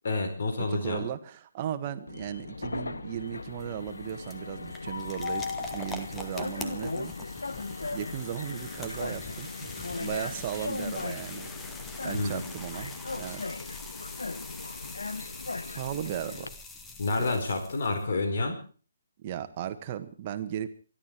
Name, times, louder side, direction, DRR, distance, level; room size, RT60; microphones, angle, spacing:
voice 1, 0.0-1.0 12.1-12.5 17.0-18.6, left 3 dB, 55° left, 7 dB, 4.5 m, -29 dB
voice 2, 0.6-7.1 7.9-9.7 10.0-11.5 12.0-13.6 15.7-16.6 17.2-17.4 19.2-20.7, right 10 dB, 35° right, 8 dB, 1.7 m, -36 dB
Train, 2.1-16.5, left 3 dB, 75° left, 1.2 m, -37 dB
sound 1, 3.2-18.1, left 3 dB, 10° left, 1.7 m, -44 dB
24.5 x 12.0 x 4.7 m, 0.40 s
figure-of-eight pair, 140°, 0 cm